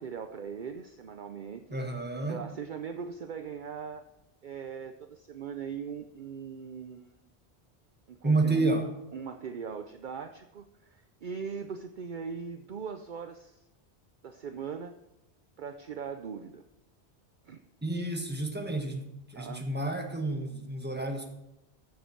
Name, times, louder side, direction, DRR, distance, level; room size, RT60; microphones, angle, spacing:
voice 1, 0.0-1.8 2.3-4.0 4.4-7.1 8.1-8.8 9.1-13.6 14.2-15.0 15.6-16.6 17.4-17.6 19.4-19.6, right 6 dB, 55° right, 8 dB, 0.7 m, -40 dB
voice 2, 1.7-2.4 8.2-8.9 17.8-21.3, right 2 dB, 10° right, 3 dB, 1.4 m, -30 dB
15.0 x 6.9 x 4.6 m, 0.91 s
omnidirectional pair, 1.1 m